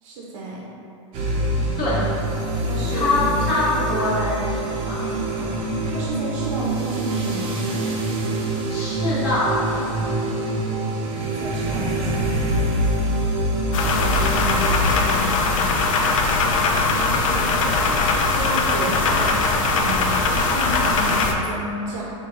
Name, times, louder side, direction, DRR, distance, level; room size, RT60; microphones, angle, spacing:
voice 1, 0.0-0.6 1.8-2.0 2.6-3.1 5.3-7.6 11.2-12.4 16.8-22.1, right 2 dB, 65° right, -3 dB, 0.6 m, -32 dB
sound 1, 1.1-15.0, right 1 dB, 30° right, 0.5 m, -25 dB
voice 2, 2.9-5.1 8.7-9.5 13.9-15.7, left 2 dB, 45° left, -11 dB, 1.1 m, -25 dB
sound 2, 13.7-21.3, left 3 dB, 70° left, 0.5 m, -20 dB
4.6 x 2.2 x 3.8 m, 2.7 s
supercardioid pair, 150°, 17 cm